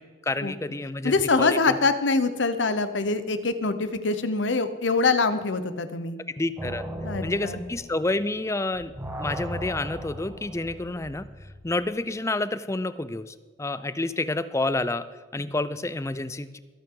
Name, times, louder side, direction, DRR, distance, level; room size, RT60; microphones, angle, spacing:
voice 1, 0.2-1.8 6.4-6.8 7.2-8.9 9.2-11.3 11.6-15.1 15.3-16.6, left 2 dB, 15° left, 14 dB, 0.5 m, -29 dB
voice 2, 1.0-6.2 7.0-7.6, left 3 dB, 75° left, 11 dB, 0.9 m, -24 dB
sound 1, 6.6-8.5 8.7-11.7, equal, 15° right, 1.9 m, -37 dB
22.5 x 8.7 x 3.8 m, 1.4 s
head